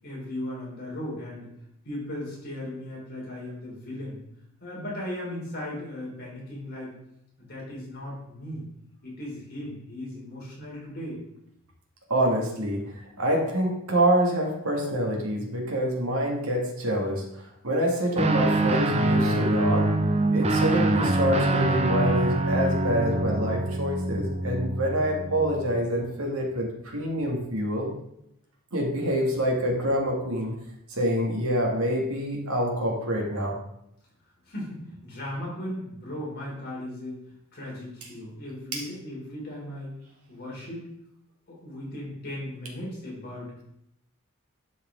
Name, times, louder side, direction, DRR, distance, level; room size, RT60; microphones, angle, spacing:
voice 1, 0.0-1.5 1.8-4.2 4.6-6.9 7.4-8.6 9.0-11.2 34.4-37.2 37.5-39.9 40.3-40.9 41.5-43.5, left 1 dB, 45° left, -4 dB, 3.4 m, -37 dB
voice 2, 12.1-17.2 17.6-19.9 20.3-27.9 28.7-30.6 30.9-33.6 38.7-38.8, equal, 85° right, 0 dB, 2.1 m, -26 dB
Guitar, 18.2-25.8, right 2 dB, 30° right, 0.6 m, -24 dB
11.5 x 4.9 x 3.8 m, 0.77 s
head